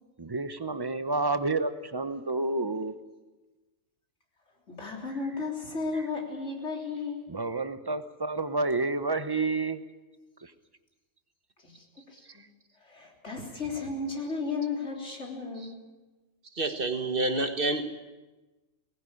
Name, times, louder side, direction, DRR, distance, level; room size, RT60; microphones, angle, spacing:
voice 1, 0.2-2.9 7.3-9.8, right 3 dB, 20° right, 11 dB, 0.8 m, -29 dB
voice 2, 4.7-7.3 11.6-12.4 12.8-15.8, left 4 dB, 55° left, 0 dB, 3.9 m, -34 dB
voice 3, 16.5-18.0, right 2 dB, 40° right, 7 dB, 1.6 m, -28 dB
19.0 x 16.5 x 9.9 m, 1.2 s
omnidirectional pair, 1.4 m